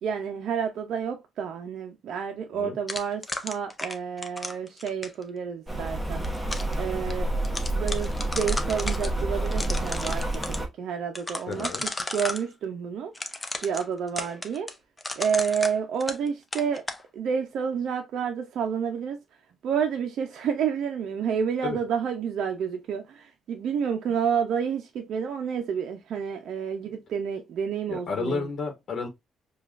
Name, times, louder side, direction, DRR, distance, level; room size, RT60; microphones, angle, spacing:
voice 1, 0.0-6.2 6.8-7.3 7.7-10.4 10.8-11.7 12.1-14.7 15.2-16.8 17.1-19.2 19.6-28.5, right 7 dB, 70° right, 0.5 m, -29 dB
sound 1, 2.9-5.2 6.0-6.7 7.1-7.2 7.4-9.1 9.5-10.6 11.2-12.4 13.1-16.3 16.5-17.0, left 2 dB, 15° left, 0.6 m, -34 dB
Rain, 5.7-10.7, right 1 dB, 5° right, 1.1 m, -29 dB
voice 2, 11.5-11.8 21.6-21.8 27.9-29.1, left 4 dB, 60° left, 1.0 m, -31 dB
4.9 x 2.3 x 2.4 m
cardioid pair, 90°, 0 cm